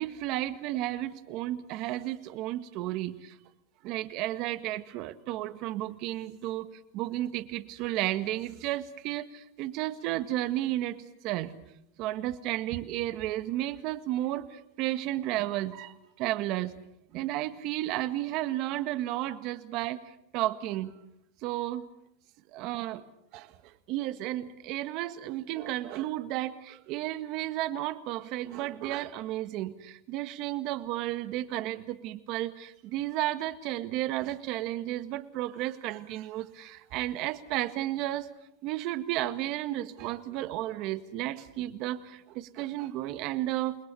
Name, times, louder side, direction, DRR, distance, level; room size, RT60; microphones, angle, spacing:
voice 1, 0.0-3.4 3.8-11.0 11.2-11.5 12.0-16.7 17.1-20.9 21.4-21.9 22.5-23.0 23.3-23.6 23.9-38.3 38.6-43.8, right 15 dB, 45° right, 12 dB, 1.7 m, -33 dB
29.0 x 21.5 x 7.0 m, 0.82 s
supercardioid pair, 140°, 0 cm